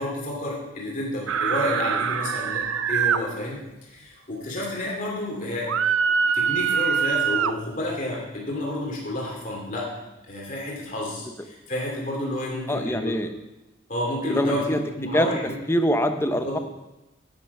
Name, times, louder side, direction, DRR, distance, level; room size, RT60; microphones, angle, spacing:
voice 1, 0.0-5.7 6.2-9.9 10.3-13.1 13.9-15.6 16.4-16.6, left 1 dB, 40° left, -3 dB, 2.4 m, -30 dB
sound 1, 1.3-3.2 5.7-7.5, right 7 dB, 90° right, 0.5 m, -23 dB
voice 2, 12.7-13.3 14.3-14.8 15.1-15.3 15.7-16.6, equal, 10° left, 8 dB, 0.6 m, -23 dB
9.4 x 9.2 x 5.4 m, 0.99 s
head